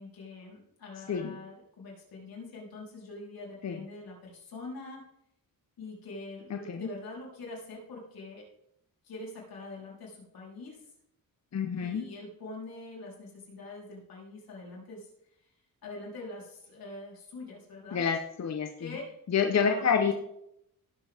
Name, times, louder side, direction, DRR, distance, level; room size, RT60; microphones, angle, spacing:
voice 1, 0.0-5.0 5.8-8.5 9.0-10.8 11.7-15.1 15.8-18.0 18.8-19.1 19.6-20.1, left 2 dB, 85° left, -3 dB, 3.9 m, -44 dB
voice 2, 11.5-12.1 17.9-18.9 19.3-20.1, left 6 dB, 50° left, 4 dB, 0.9 m, -28 dB
16.5 x 7.0 x 3.5 m, 0.77 s
wide cardioid pair, 110°, 35 cm